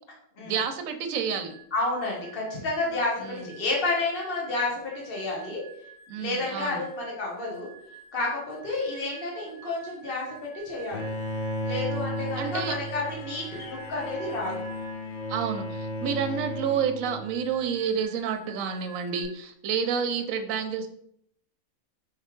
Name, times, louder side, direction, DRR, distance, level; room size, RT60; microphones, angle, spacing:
voice 1, 0.4-1.5 3.2-3.5 6.1-6.8 12.4-12.8 15.3-20.9, right 7 dB, 75° right, 6 dB, 1.0 m, -29 dB
sound 1, 1.4-15.2 17.0-19.2, right 6 dB, 25° left, 1.8 m, -50 dB
voice 2, 1.7-5.6 6.2-7.7 8.1-11.1 11.6-14.6, left 2 dB, 45° left, -3 dB, 1.3 m, -30 dB
Bowed string instrument, 10.9-17.7, equal, 60° left, 0.5 m, -34 dB
3.7 x 3.3 x 4.4 m, 0.71 s
omnidirectional pair, 1.5 m